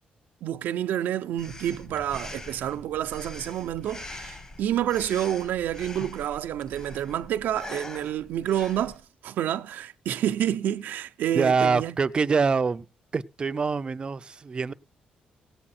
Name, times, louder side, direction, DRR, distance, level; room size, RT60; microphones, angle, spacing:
voice 1, 0.4-12.0, right 11 dB, 80° right, 0.6 m, -29 dB
Breathing, 1.4-9.0, left 2 dB, 25° left, 1.2 m, -43 dB
voice 2, 11.3-12.9 13.1-14.7, right 5 dB, 30° right, 0.5 m, -25 dB
16.5 x 8.7 x 4.2 m
cardioid pair, 115°, 3 cm